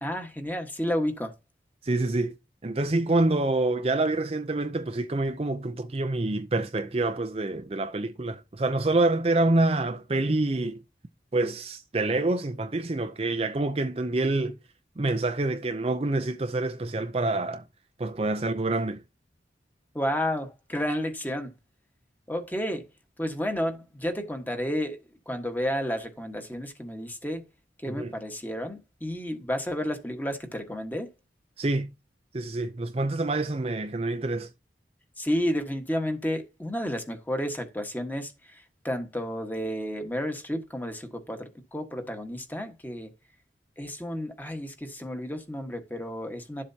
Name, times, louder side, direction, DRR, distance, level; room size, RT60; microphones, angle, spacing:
voice 1, 0.0-1.3 19.9-21.5 22.3-22.9 23.2-25.0 25.3-27.4 27.8-31.1 35.2-43.1 43.8-46.6, equal, 10° left, 1.4 m, -31 dB
voice 2, 1.8-2.4 2.6-10.8 11.3-14.6 15.0-17.6 18.0-19.0 27.9-28.1 31.6-31.9 32.3-34.5, right 2 dB, 35° right, 0.5 m, -27 dB
12.0 x 7.4 x 2.8 m
head